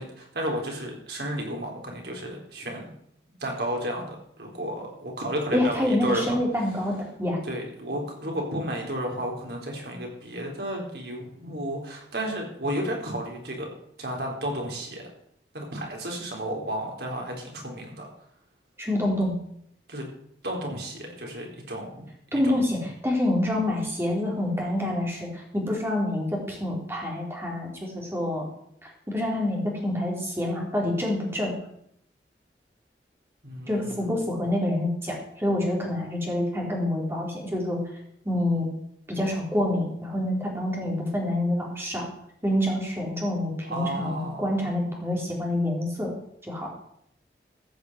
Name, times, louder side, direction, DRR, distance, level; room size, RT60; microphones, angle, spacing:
voice 1, 0.0-2.9 3.4-6.3 7.4-13.7 14.0-15.0 15.5-18.1 19.9-20.1 20.4-22.1 22.3-22.6 33.4-34.1 43.6-44.7, right 1 dB, 65° right, 0 dB, 3.9 m, -32 dB
voice 2, 5.5-7.4 18.8-19.3 22.3-28.5 28.8-31.5 33.7-37.8 38.3-38.7 39.1-42.1 42.4-46.2 46.4-46.7, left 1 dB, 15° right, -1 dB, 3.8 m, -27 dB
14.0 x 6.8 x 8.0 m, 0.72 s
head